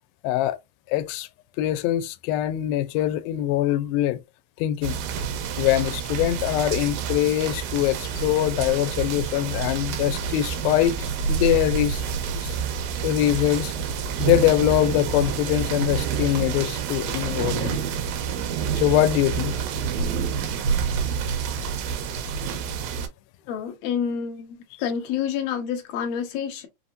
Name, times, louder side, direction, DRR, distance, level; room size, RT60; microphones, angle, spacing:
voice 1, 0.2-0.6 0.9-1.3 1.6-4.2 4.6-5.0 5.6-12.0 12.4-12.6 13.0-13.7 14.2-17.8 18.8-19.6, left 13 dB, 85° left, 2.4 m, -23 dB
sound 1, 4.8-23.1, right 7 dB, 80° right, 2.4 m, -28 dB
voice 2, 23.5-26.7, left 8 dB, 70° left, 1.5 m, -28 dB
5.8 x 2.7 x 2.5 m
omnidirectional pair, 4.1 m